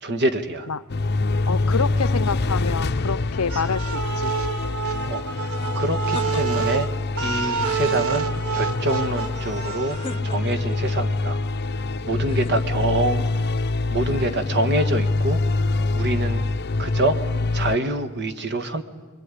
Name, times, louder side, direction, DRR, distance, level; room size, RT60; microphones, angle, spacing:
voice 1, 0.0-0.7 5.0-6.9 7.1-10.0 10.2-11.4 12.0-13.2 13.9-15.4 15.9-16.4 16.8-17.2 17.5-18.8, right 1 dB, 50° right, 9 dB, 1.7 m, -26 dB
sound 1, 0.9-17.8, left 3 dB, 50° left, 0.7 m, -25 dB
voice 2, 1.5-4.3, left 5 dB, 80° left, 13 dB, 0.8 m, -27 dB
sound 2, 3.5-10.2, right 6 dB, 75° right, 1.4 m, -28 dB
sound 3, 5.5-6.9 7.5-8.6 9.9-10.8 12.3-13.1, left 3 dB, 25° left, 1.0 m, -39 dB
25.0 x 23.0 x 9.9 m, 1.5 s
head